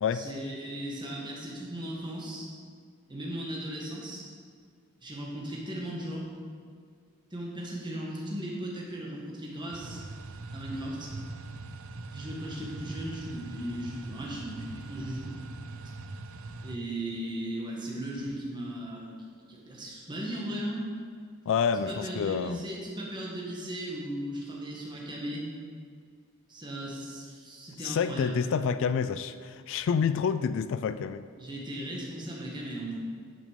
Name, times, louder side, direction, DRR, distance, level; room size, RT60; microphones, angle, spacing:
voice 1, 0.1-2.5 3.1-4.3 5.0-6.3 7.3-10.0 10.5-11.1 12.1-15.3 16.6-19.1 19.5-20.9 21.7-25.5 26.5-28.5 31.3-33.0, right 1 dB, 20° right, -3 dB, 1.7 m, -37 dB
sound 1, 9.7-16.8, right 3 dB, 65° right, 0.6 m, -42 dB
voice 2, 21.5-22.6 27.8-31.3, left 6 dB, 60° left, 12 dB, 0.3 m, -28 dB
10.5 x 6.1 x 5.2 m, 2.1 s
head